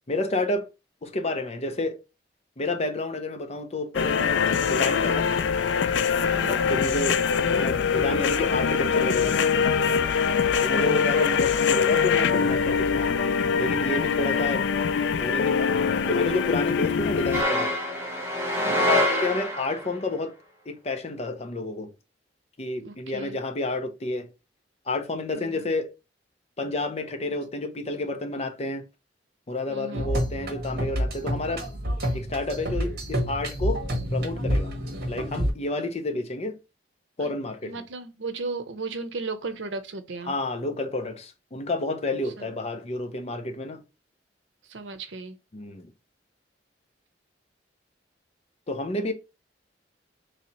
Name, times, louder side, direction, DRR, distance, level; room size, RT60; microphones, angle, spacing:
voice 1, 0.1-0.7 1.0-2.0 2.6-5.3 6.4-7.2 7.6-9.4 10.6-13.3 13.6-14.6 15.1-15.8 16.1-17.7 18.8-20.3 20.7-21.9 22.6-24.3 24.9-25.9 26.6-28.8 29.5-31.7 32.1-33.8 34.1-34.7 35.1-36.6 37.2-37.7 40.3-43.8 45.5-45.9 48.7-49.1, left 2 dB, 35° left, 0.7 m, -30 dB
sound 1, 3.9-17.4, left 6 dB, 75° left, 0.4 m, -23 dB
voice 2, 6.3-6.6 10.8-11.2 18.5-18.9 22.8-23.4 25.3-25.7 29.7-30.1 37.2-37.3 37.6-40.3 42.2-42.6 44.6-45.4, right 3 dB, 90° right, 0.7 m, -36 dB
sound 2, 17.3-19.9, left 1 dB, 15° right, 1.0 m, -25 dB
sound 3, 29.9-35.5, equal, 60° right, 1.2 m, -28 dB
3.1 x 2.8 x 4.1 m
head